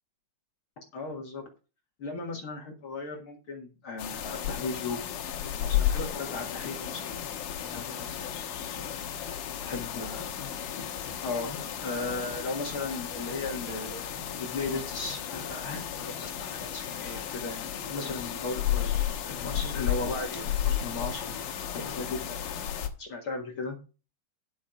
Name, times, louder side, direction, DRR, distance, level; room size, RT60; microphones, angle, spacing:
voice 1, 0.9-1.4 2.0-7.2 7.6-8.5 9.6-10.3 11.2-19.0 19.2-21.4 21.7-22.4 23.0-23.8, left 3 dB, 45° left, 1 dB, 1.9 m, -36 dB
sound 1, 4.0-22.9, left 10 dB, 70° left, 2.5 m, -33 dB
10.5 x 6.3 x 5.0 m, 0.33 s
omnidirectional pair, 4.1 m